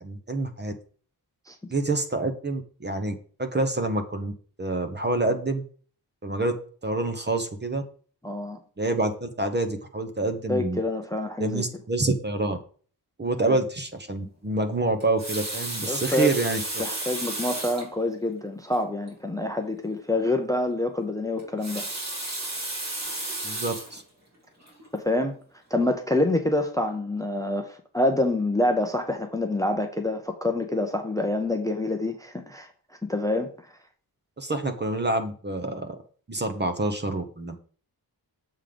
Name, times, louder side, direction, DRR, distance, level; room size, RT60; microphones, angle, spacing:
voice 1, 0.0-0.7 1.7-4.3 4.6-5.6 6.2-6.5 6.8-7.8 8.8-10.8 11.4-12.6 13.2-16.6 23.4-24.0 34.4-35.9 36.3-37.6, right 2 dB, 25° right, 7 dB, 0.8 m, -27 dB
voice 2, 8.2-8.6 10.5-11.6 13.4-13.6 15.9-16.3 16.8-21.9 24.9-25.4 25.7-32.7 33.0-33.5, left 2 dB, 10° left, 5 dB, 0.6 m, -26 dB
Water tap faucet, 15.0-17.9 18.7-18.8 19.1-19.2 21.4-24.0 24.7-24.9, right 2 dB, 40° right, 2.7 m, -33 dB
7.3 x 3.7 x 5.0 m, 0.43 s
wide cardioid pair, 150°, 40 cm